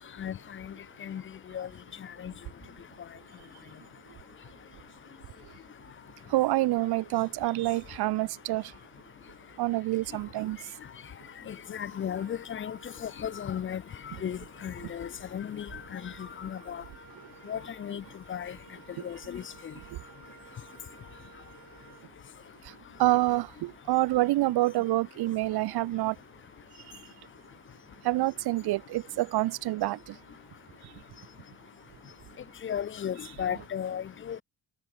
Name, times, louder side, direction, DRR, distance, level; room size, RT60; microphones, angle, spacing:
voice 1, 6.3-8.7 9.6-10.6 19.0-19.1 23.0-26.2 28.0-30.2, right 17 dB, 75° right, 0.8 m, -27 dB
voice 2, 11.5-13.8 14.2-15.7 15.9-16.1 16.4-16.8 17.5-18.0 18.3-18.5 19.0-19.4 32.6-34.4, left 9 dB, 35° left, 0.5 m, -35 dB
Wind instrument woodwind instrument, 12.1-22.5, right 8 dB, 45° right, 3.7 m, -55 dB
cardioid pair, 120°, 38 cm